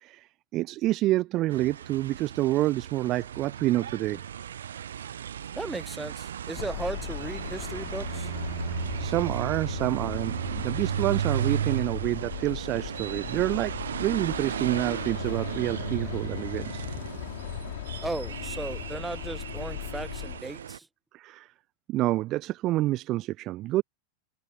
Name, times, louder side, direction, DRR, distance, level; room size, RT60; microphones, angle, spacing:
voice 1, 0.0-4.2 8.7-16.8 21.1-21.5 21.9-23.8, right 16 dB, 35° right, 0.7 m, -28 dB
sound 1, 1.5-20.8, right 9 dB, 65° right, 0.4 m, -35 dB
voice 2, 5.6-8.3 18.0-20.9, right 2 dB, 10° right, 1.2 m, -36 dB
sound 2, 6.5-20.4, left 19 dB, 50° left, 3.0 m, -38 dB
figure-of-eight pair, 90°, 0 cm